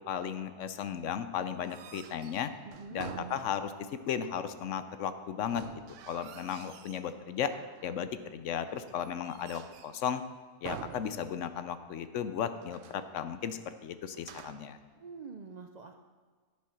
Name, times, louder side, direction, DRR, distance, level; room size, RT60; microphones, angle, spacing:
voice 1, 0.0-2.5 2.9-3.7 4.1-5.7 6.1-7.5 7.8-10.2 10.6-14.8, left 8 dB, 75° left, 11 dB, 1.0 m, -35 dB
sound 1, 1.6-4.0 5.4-7.1 7.5-8.1 8.7-10.1 10.6-11.7 12.0-12.1 12.6-13.1 14.1-14.8, right 9 dB, 75° right, 0.9 m, -48 dB
voice 2, 2.6-3.1 15.0-16.0, right 5 dB, 55° right, 4 dB, 0.4 m, -46 dB
10.5 x 6.9 x 5.7 m, 1.5 s
omnidirectional pair, 1.3 m